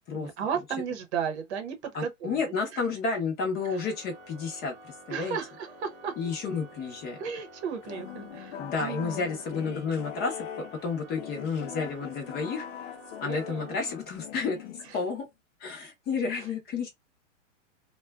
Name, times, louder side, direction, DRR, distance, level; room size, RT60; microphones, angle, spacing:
voice 1, 0.1-2.4 2.7-2.8 3.6-3.8 5.1-6.1 7.2-9.3 13.2-13.7, right 7 dB, 60° right, 0.8 m, -34 dB
voice 2, 1.9-5.4 6.2-7.2 8.6-10.5 10.8-12.7 13.2-15.3 15.6-16.9, left 4 dB, 25° left, 0.7 m, -31 dB
Organ, 3.5-14.5, right 1 dB, 20° right, 0.7 m, -51 dB
sound 1, 7.8-15.2, left 9 dB, 70° left, 0.5 m, -42 dB
2.4 x 2.2 x 2.3 m
hypercardioid pair, 130°, 38 cm